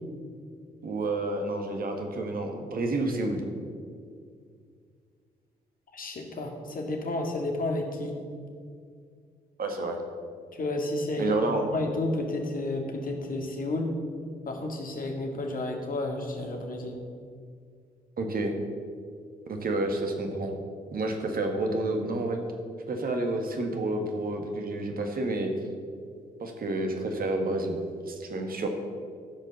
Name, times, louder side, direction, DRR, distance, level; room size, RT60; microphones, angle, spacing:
voice 1, 0.8-3.4 9.6-10.0 11.2-11.6 18.2-18.5 19.5-20.5 20.9-22.4 22.9-25.5 26.4-27.8 28.1-28.7, right 2 dB, 50° right, 4 dB, 1.7 m, -29 dB
voice 2, 5.9-8.1 10.5-11.4 11.7-13.9 14.5-17.0, left 2 dB, 50° left, 2 dB, 2.1 m, -31 dB
14.0 x 5.2 x 6.8 m, 2.2 s
hypercardioid pair, 40°, 19 cm